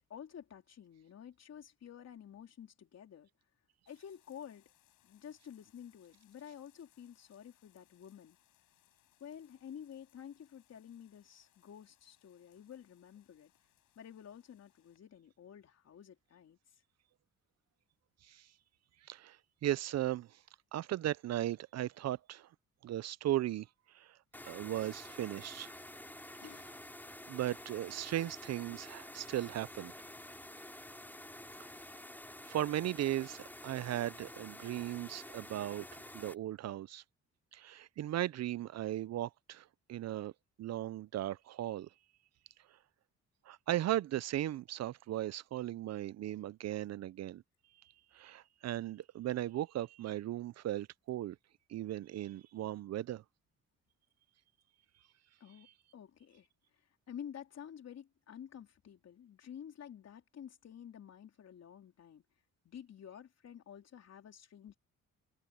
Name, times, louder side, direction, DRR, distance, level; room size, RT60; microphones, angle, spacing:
voice 1, 0.1-3.3 3.9-4.6 5.0-8.4 9.2-13.5 14.0-16.8 26.3-26.8 55.4-56.5 57.1-62.2 62.6-64.7, left 9 dB, 60° left, 3.6 m, -51 dB
sound 1, 3.9-15.0, left 14 dB, 85° left, 5.4 m, -72 dB
voice 2, 19.6-20.3 20.7-22.5 22.8-23.7 23.9-24.2 24.4-25.7 27.3-29.9 32.5-35.9 36.1-37.0 37.5-40.3 40.6-41.9 43.5-47.4 48.1-51.4 51.7-53.2, right 13 dB, 60° right, 0.6 m, -37 dB
sound 2, 24.3-36.4, left 1 dB, 5° left, 3.7 m, -50 dB
cardioid pair, 90°, 30 cm